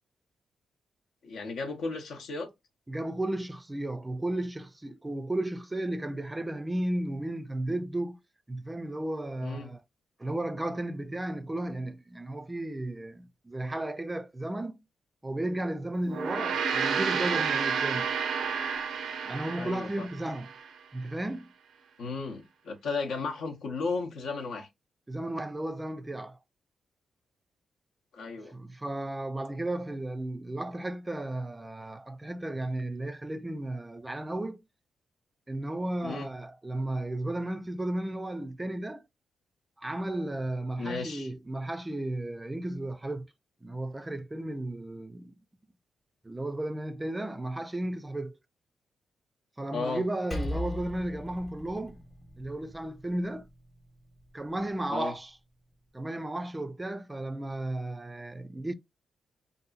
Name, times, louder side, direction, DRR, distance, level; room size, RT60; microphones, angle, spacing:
voice 1, 1.2-2.5 9.4-9.7 19.6-20.1 22.0-24.7 28.1-28.5 36.0-36.3 40.8-41.3 49.7-50.0 54.9-55.1, left 4 dB, 80° left, 0.7 m, -34 dB
voice 2, 2.9-8.2 8.5-9.8 10.2-14.8 15.2-18.1 19.3-20.5 20.9-21.5 25.1-26.4 28.5-34.6 35.5-39.0 39.8-43.3 43.6-45.3 46.2-48.4 49.6-52.0 52.4-53.5 54.3-55.4 55.9-58.7, right 1 dB, 15° right, 0.3 m, -34 dB
Gong, 16.0-20.7, right 6 dB, 80° right, 0.5 m, -30 dB
Percussion, 50.3-55.1, left 1 dB, 30° left, 0.9 m, -40 dB
2.7 x 2.5 x 2.3 m
cardioid pair, 85°, 0 cm